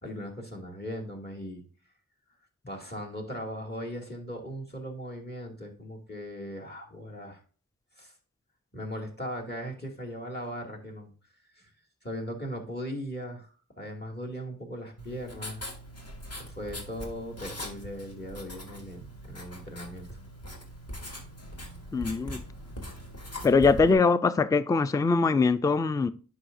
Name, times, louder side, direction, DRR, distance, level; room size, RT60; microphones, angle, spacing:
voice 1, 0.0-1.6 2.7-7.4 8.0-8.1 8.7-11.1 11.5-11.7 12.0-13.5 13.8-15.6 16.4-20.2, equal, 30° left, 2.4 m, -38 dB
Writing, 15.0-23.9, equal, 45° left, 2.0 m, -41 dB
voice 2, 21.9-22.4 23.4-26.1, left 4 dB, 10° left, 0.3 m, -22 dB
9.6 x 5.7 x 2.6 m
cardioid pair, 60°, 36 cm